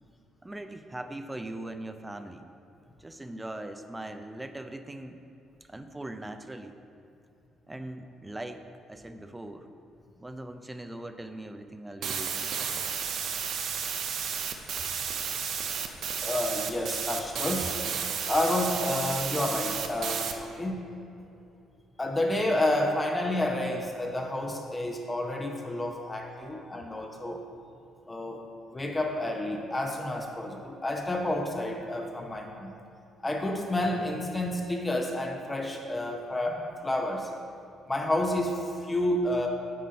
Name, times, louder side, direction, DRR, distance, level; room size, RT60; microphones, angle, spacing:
voice 1, 0.4-2.5 3.0-5.2 5.6-6.8 7.7-8.6 8.9-9.7 10.2-12.5 21.2-21.3, right 1 dB, 15° right, 8 dB, 0.5 m, -40 dB
sound 1, 12.0-20.3, right 7 dB, 65° right, 0.5 m, -33 dB
voice 2, 16.2-17.8 18.3-20.9 22.0-27.4 28.1-28.4 28.7-32.7 33.2-37.3 37.9-39.5, left 1 dB, 20° left, 1 dB, 0.8 m, -30 dB
7.7 x 3.8 x 5.3 m, 2.6 s
hypercardioid pair, 55°, 0 cm